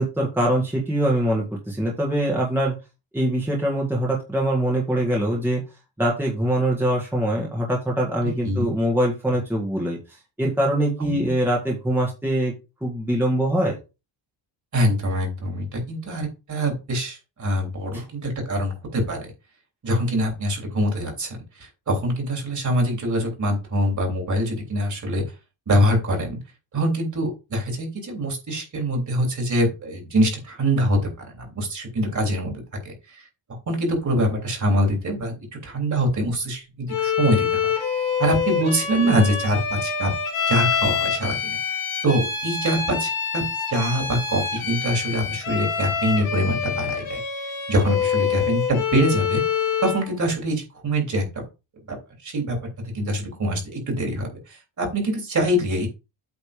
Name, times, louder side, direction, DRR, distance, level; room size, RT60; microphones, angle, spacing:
voice 1, 0.0-2.8 3.1-5.6 6.0-10.0 10.4-12.5 12.8-13.8 17.9-18.0, right 1 dB, 5° right, -2 dB, 1.7 m, -23 dB
voice 2, 14.7-19.3 19.8-25.2 25.7-26.4 26.7-33.2 33.7-35.3 35.6-37.7 38.2-40.1 40.5-41.6 42.0-43.4 43.7-47.2 47.7-49.4 49.8-51.4 51.9-52.0 52.2-55.9, equal, 35° right, 2 dB, 3.4 m, -24 dB
Bowed string instrument, 36.9-50.1, left 7 dB, 75° left, 2.8 m, -26 dB
8.5 x 4.0 x 5.1 m, 0.28 s
cardioid pair, 165°, 48 cm